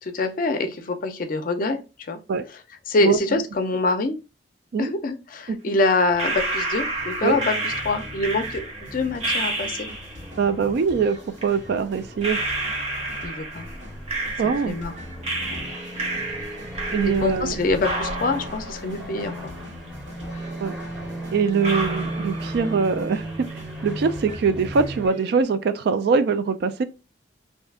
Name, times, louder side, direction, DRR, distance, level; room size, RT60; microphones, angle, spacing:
voice 1, 0.0-2.2 2.9-4.2 4.8-9.9 13.2-13.7 14.4-14.9 15.5-15.6 17.0-19.3, left 2 dB, 50° left, 0.5 m, -25 dB
sound 1, 6.1-25.1, right 1 dB, 5° right, 0.6 m, -37 dB
sound 2, 6.2-10.3 11.4-11.5 12.2-14.9 15.2-17.5 17.8-19.9 20.2-20.3 21.0-21.1 21.6-22.9 23.2-23.8, right 2 dB, 35° right, 0.8 m, -30 dB
sound 3, 6.9-25.4, equal, 85° right, 1.3 m, -42 dB
voice 2, 10.4-12.4 14.4-14.8 16.9-17.6 20.6-20.8 21.3-23.2 23.8-26.8, right 5 dB, 60° right, 0.3 m, -22 dB
2.6 x 2.3 x 3.4 m
head